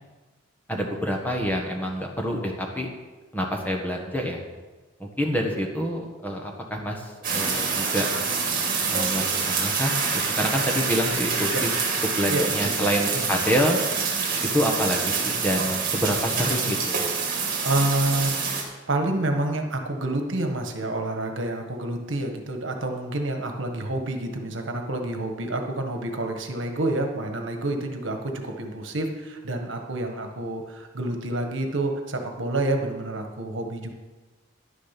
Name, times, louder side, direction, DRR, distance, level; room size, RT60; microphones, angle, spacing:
voice 1, 0.7-2.9 3.3-4.4 5.0-8.1 8.9-11.7 12.1-13.8 14.4-17.0, equal, 10° left, 1 dB, 1.5 m, -27 dB
sound 1, 7.2-18.6, right 5 dB, 45° right, 2.5 m, -26 dB
voice 2, 17.6-33.9, right 2 dB, 70° right, 4 dB, 1.5 m, -28 dB
11.0 x 10.5 x 5.9 m, 1.3 s
head